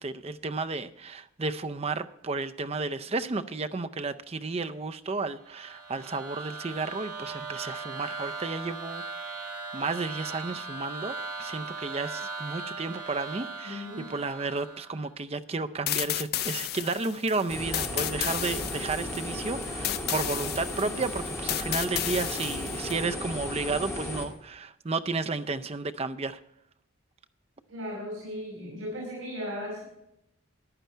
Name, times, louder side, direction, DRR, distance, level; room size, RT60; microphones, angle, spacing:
voice 1, 0.0-9.5 9.7-26.4, right 3 dB, 30° right, 10 dB, 0.5 m, -32 dB
sound 1, 5.4-15.1, right 3 dB, 50° right, 6.0 m, -39 dB
voice 2, 13.6-14.1 27.7-29.8, equal, 70° right, -3 dB, 5.3 m, -36 dB
sound 2, 15.9-23.0, left 13 dB, 45° left, 0.3 m, -33 dB
sound 3, 17.5-24.3, left 1 dB, 10° left, 2.1 m, -35 dB
15.0 x 10.5 x 4.5 m, 0.81 s
head